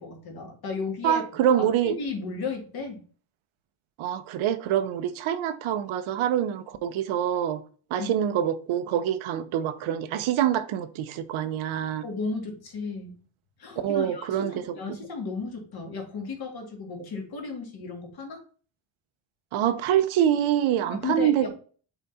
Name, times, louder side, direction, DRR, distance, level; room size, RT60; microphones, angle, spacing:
voice 1, 0.0-1.2 1.8-3.0 8.0-8.1 12.0-13.2 13.6-18.4 20.9-21.5, left 4 dB, 50° left, 2.2 m, -34 dB
voice 2, 1.0-1.9 4.0-7.6 7.9-12.0 13.8-14.8 19.5-21.5, right 10 dB, 75° right, 0.8 m, -25 dB
5.8 x 4.1 x 4.2 m
cardioid pair, 155°, 48 cm